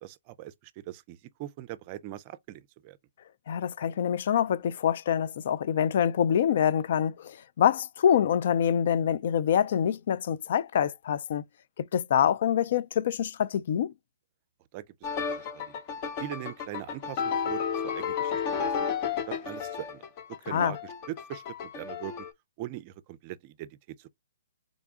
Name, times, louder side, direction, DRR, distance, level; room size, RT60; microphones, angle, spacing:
voice 1, 0.0-3.0 14.7-14.9 15.3-18.8 19.3-20.1 20.4-20.8 21.1-22.1 22.6-24.1, right 14 dB, 35° right, 0.4 m, -41 dB
voice 2, 3.5-11.4 11.8-13.9 20.5-20.8, left 9 dB, 55° left, 0.3 m, -25 dB
sound 1, 15.0-22.3, left 7 dB, 35° left, 0.7 m, -32 dB
3.7 x 2.3 x 3.6 m
hypercardioid pair, 140°, 0 cm